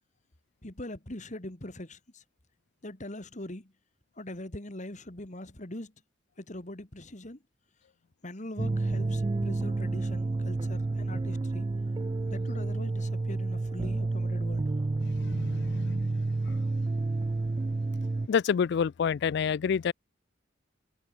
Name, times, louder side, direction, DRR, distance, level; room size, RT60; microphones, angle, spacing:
voice 1, 0.6-2.2 2.8-3.7 4.1-5.9 6.4-7.4 8.2-11.7 12.3-14.6, left 1 dB, 40° left, 2.5 m, -42 dB
sound 1, 8.6-18.3, right 2 dB, 25° right, 0.3 m, -30 dB
voice 2, 15.0-16.6 18.3-19.9, left 6 dB, 60° left, 0.3 m, -29 dB
head